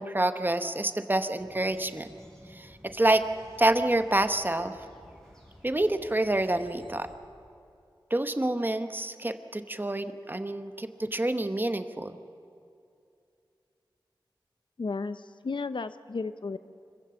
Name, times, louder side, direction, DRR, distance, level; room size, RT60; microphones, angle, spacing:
voice 1, 0.0-2.1 2.5-3.2 3.6-4.8 5.6-7.1 8.1-12.2, right 1 dB, 25° right, 9 dB, 1.0 m, -27 dB
sound 1, 1.4-7.2, equal, 5° left, 6.2 m, -54 dB
voice 2, 14.8-16.6, left 4 dB, 70° left, 12 dB, 0.7 m, -33 dB
26.0 x 15.5 x 7.0 m, 2.6 s
wide cardioid pair, 80°, 9 cm